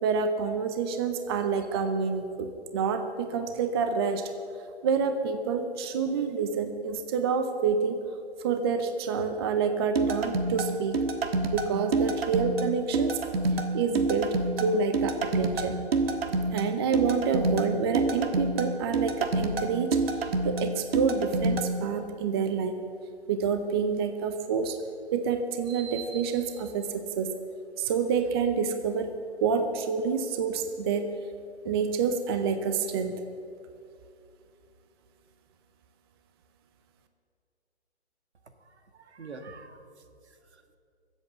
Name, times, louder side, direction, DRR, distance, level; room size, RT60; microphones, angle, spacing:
voice 1, 0.0-4.3 4.8-8.0 8.4-11.0 11.5-13.2 13.7-15.8 16.5-22.8 23.3-24.8 25.1-27.3 27.8-29.1 29.4-31.1 31.6-33.3, right 5 dB, 25° right, 7 dB, 0.6 m, -28 dB
sound 1, 10.0-21.7, right 3 dB, 65° right, 1.5 m, -28 dB
voice 2, 38.4-40.8, right 3 dB, 80° right, 7 dB, 1.7 m, -47 dB
21.0 x 8.2 x 7.2 m, 2.6 s
hypercardioid pair, 145°, 33 cm